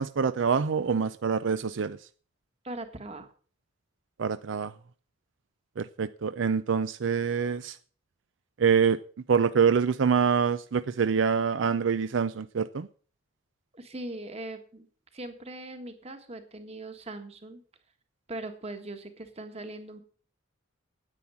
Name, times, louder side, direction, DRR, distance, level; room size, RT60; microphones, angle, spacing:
voice 1, 0.0-2.1 4.2-4.7 5.8-7.8 8.6-9.0 9.3-12.9, right 6 dB, 70° right, 0.5 m, -25 dB
voice 2, 2.6-3.3 13.7-14.9 15.1-17.6 18.3-20.0, right 2 dB, 30° right, 1.6 m, -40 dB
9.9 x 8.8 x 7.0 m
head